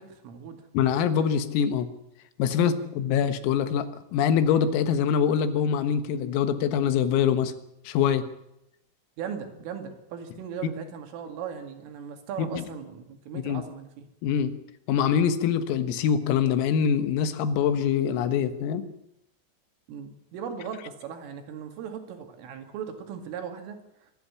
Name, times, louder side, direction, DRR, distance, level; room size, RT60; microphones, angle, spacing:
voice 1, 0.0-0.7 2.6-2.8 9.2-14.1 19.9-24.1, right 7 dB, 75° right, 6 dB, 4.7 m, -38 dB
voice 2, 0.8-1.9 2.4-7.5 7.9-8.2 12.4-12.6 13.3-13.6 14.2-14.5 14.9-18.8, left 8 dB, 85° left, 11 dB, 4.0 m, -24 dB
25.5 x 11.5 x 10.0 m, 0.84 s
omnidirectional pair, 6.0 m